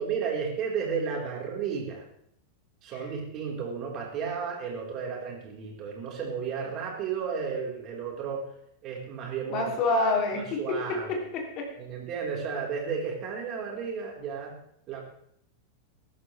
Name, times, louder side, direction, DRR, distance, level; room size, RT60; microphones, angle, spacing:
voice 1, 0.0-2.0 2.8-8.4 8.8-9.7 10.6-11.3 11.8-14.5 14.9-15.0, right 6 dB, 35° right, -1 dB, 4.3 m, -33 dB
voice 2, 9.5-11.7, left 2 dB, 40° left, 2 dB, 3.1 m, -28 dB
21.5 x 11.5 x 3.4 m, 0.69 s
figure-of-eight pair, 90°, 0 cm